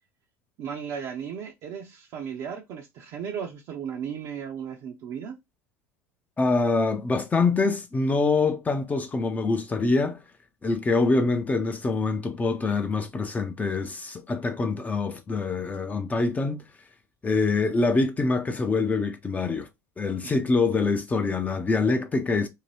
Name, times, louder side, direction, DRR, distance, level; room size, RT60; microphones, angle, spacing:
voice 1, 0.6-5.4 20.2-20.4, right 7 dB, 55° right, 0.6 m, -35 dB
voice 2, 6.4-10.2 10.6-16.7 17.2-19.7 20.0-22.5, left 3 dB, 20° left, 0.5 m, -25 dB
2.7 x 2.1 x 3.2 m
hypercardioid pair, 85°, 8 cm